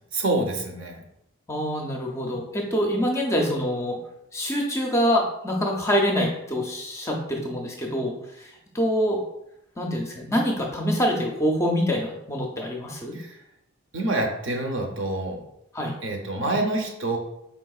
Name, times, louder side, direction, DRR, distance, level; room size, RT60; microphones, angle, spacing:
voice 1, 0.1-1.0 13.1-13.4 13.9-15.4 16.0-17.2, right 2 dB, 60° right, 3 dB, 0.7 m, -27 dB
voice 2, 1.5-4.0 4.3-9.2 9.8-13.2 15.7-15.9, equal, 15° left, 0 dB, 0.5 m, -25 dB
4.7 x 3.5 x 2.3 m, 0.82 s
head